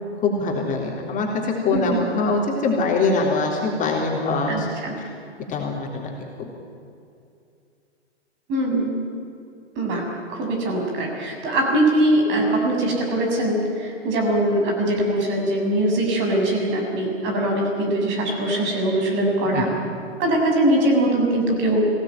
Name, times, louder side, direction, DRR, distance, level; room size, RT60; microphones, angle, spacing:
voice 1, 0.2-4.7 5.0-5.1 5.5-6.1 6.4-6.5 19.4-19.7, left 3 dB, 25° left, -1 dB, 3.7 m, -23 dB
voice 2, 1.7-2.0 4.5-5.0 8.5-9.1 9.7-19.7 20.2-21.9, right 1 dB, 35° right, 1 dB, 6.7 m, -22 dB
25.0 x 17.5 x 9.3 m, 2.5 s
hypercardioid pair, 120°, 34 cm